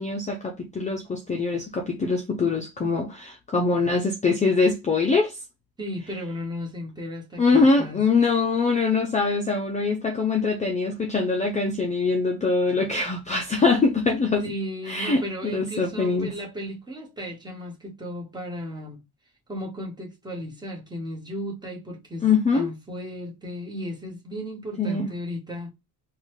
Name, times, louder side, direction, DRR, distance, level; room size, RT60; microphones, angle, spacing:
voice 1, 0.0-5.3 7.4-14.4 14.9-16.3 22.2-22.7 24.8-25.1, left 4 dB, 20° left, 0.5 m, -23 dB
voice 2, 5.8-8.0 14.4-19.0 19.5-22.3 22.5-25.7, equal, 10° right, 1.2 m, -35 dB
3.8 x 2.3 x 3.1 m
cardioid pair, 155°, 35 cm